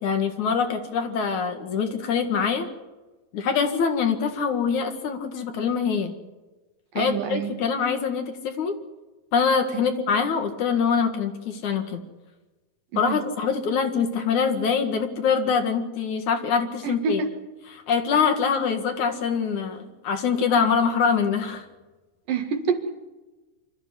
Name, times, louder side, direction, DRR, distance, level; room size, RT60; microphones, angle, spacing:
voice 1, 0.0-2.7 3.3-6.1 6.9-8.8 9.3-12.0 13.0-17.2 17.7-21.7, left 6 dB, 60° left, 6 dB, 3.1 m, -24 dB
voice 2, 7.0-7.5 9.7-9.9 12.9-13.2 16.8-17.3 22.3-23.0, right 5 dB, 70° right, 6 dB, 3.5 m, -27 dB
25.0 x 14.0 x 9.8 m, 1.2 s
omnidirectional pair, 4.0 m